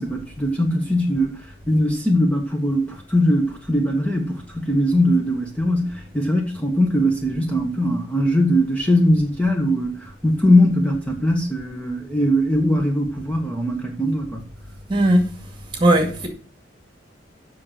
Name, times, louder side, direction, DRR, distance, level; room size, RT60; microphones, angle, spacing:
voice 1, 0.0-1.4 1.7-14.5, equal, 10° left, 1.3 m, -20 dB
voice 2, 14.9-15.3 15.7-16.3, right 1 dB, 25° right, 2.0 m, -17 dB
7.6 x 6.3 x 7.5 m
head